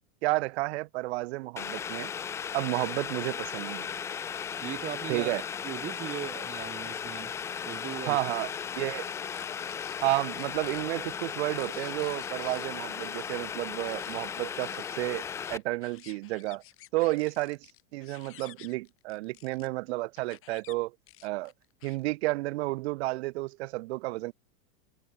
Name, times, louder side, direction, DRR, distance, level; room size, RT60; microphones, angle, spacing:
voice 1, 0.2-2.1 2.5-3.9 5.1-5.4 8.0-9.1 10.0-16.6 16.9-21.0 21.2-21.5 21.8-24.3, right 21 dB, 50° right, 0.6 m, -31 dB
Boiling, 1.6-15.6, left 7 dB, 5° left, 0.4 m, -36 dB
voice 2, 4.6-7.3 7.6-8.2, right 11 dB, 20° right, 1.1 m, -39 dB
sound 1, 7.7-8.2 8.5-8.6 9.1-10.0 10.4-12.7 13.0-13.4 13.8-14.2 14.5-19.7 20.2-20.7 21.1-22.1, left 16 dB, 30° left, 3.1 m, -53 dB
supercardioid pair, 150°, 42 cm